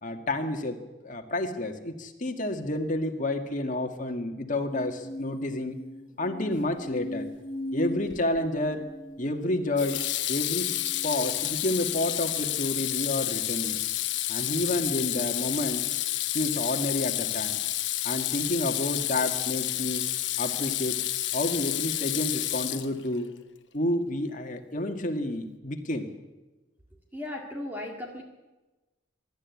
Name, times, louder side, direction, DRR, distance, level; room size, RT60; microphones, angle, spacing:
voice 1, 0.0-5.8 6.2-7.3 7.7-8.8 9.2-10.7 11.0-13.8 14.3-15.8 16.3-17.6 18.0-20.1 20.4-21.0 21.3-23.3 23.7-26.1, left 1 dB, 40° left, 5 dB, 1.9 m, -30 dB
sound 1, 4.7-12.1 12.7-13.2, left 1 dB, 25° left, 0.8 m, -40 dB
Water tap faucet / Sink (filling or washing), 8.1-8.5 9.8-23.2, left 14 dB, 60° left, 1.0 m, -30 dB
voice 2, 27.1-28.2, left 1 dB, 10° right, 0 dB, 2.0 m, -36 dB
23.0 x 12.5 x 9.5 m, 1.1 s
head